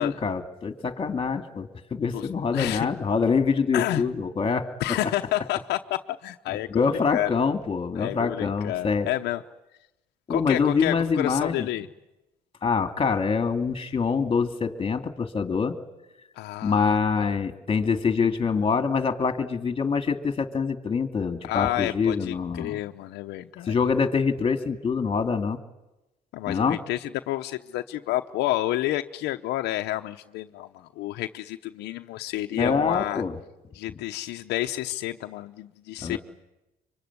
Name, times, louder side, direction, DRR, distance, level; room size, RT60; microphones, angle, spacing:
voice 1, 0.0-4.7 6.5-9.1 10.3-11.7 12.6-15.8 16.6-22.8 23.7-25.6 26.5-26.8 32.5-33.4 36.0-36.2, left 5 dB, 30° left, 9 dB, 2.4 m, -25 dB
voice 2, 2.5-2.9 3.7-4.0 4.8-6.8 7.1-7.3 8.0-9.4 10.3-11.9 16.4-17.3 21.4-23.8 26.3-33.2 33.7-36.2, left 15 dB, 85° left, 6 dB, 0.9 m, -30 dB
24.5 x 24.0 x 9.7 m, 0.96 s
cardioid pair, 110°, 17 cm